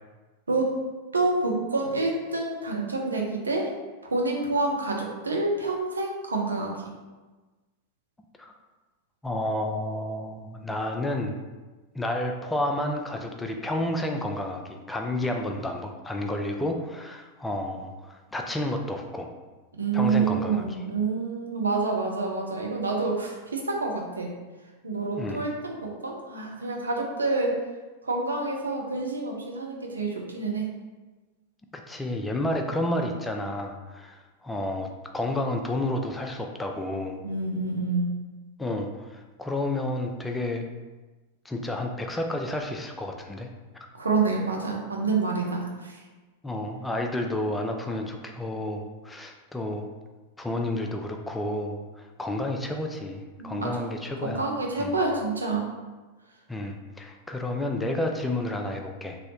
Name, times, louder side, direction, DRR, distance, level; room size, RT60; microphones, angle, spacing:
voice 1, 1.1-3.7 4.0-6.7 19.7-24.3 24.8-27.6 28.0-30.7 37.2-38.1 43.9-46.0 53.4-53.9 54.2-55.7, right 3 dB, 75° right, 0 dB, 0.5 m, -27 dB
voice 2, 9.2-11.4 11.9-19.3 19.9-20.9 25.2-25.4 31.9-34.9 35.1-37.2 38.6-40.7 41.4-43.5 46.4-49.9 50.4-54.5 54.8-55.0 56.5-59.2, left 1 dB, 10° left, 3 dB, 0.4 m, -30 dB
3.0 x 2.7 x 2.8 m, 1.2 s
figure-of-eight pair, 90°, 0 cm